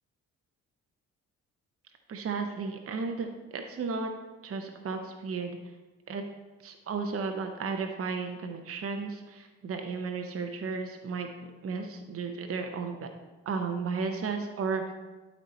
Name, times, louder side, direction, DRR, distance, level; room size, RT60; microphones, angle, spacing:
voice 1, 2.1-4.1 4.4-5.5 6.1-6.2 6.6-11.3 11.6-13.1 13.5-14.8, right 4 dB, 45° right, 5 dB, 0.8 m, -34 dB
11.5 x 4.2 x 4.2 m, 1.3 s
supercardioid pair, 60°, 34 cm